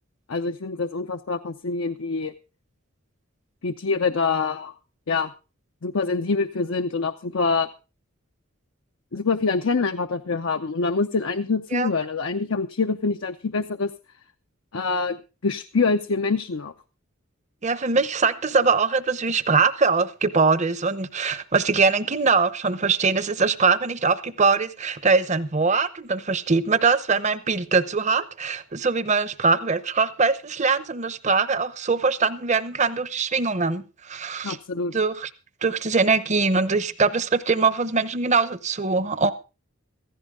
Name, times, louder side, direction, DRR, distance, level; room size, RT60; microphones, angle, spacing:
voice 1, 0.3-2.3 3.6-4.7 5.1-5.3 5.8-7.7 9.1-13.9 14.7-16.7 34.4-34.9, left 4 dB, 70° left, 0.6 m, -25 dB
voice 2, 17.6-34.6 34.9-35.3 35.6-39.3, right 4 dB, 35° right, 0.8 m, -22 dB
16.0 x 15.0 x 3.7 m
head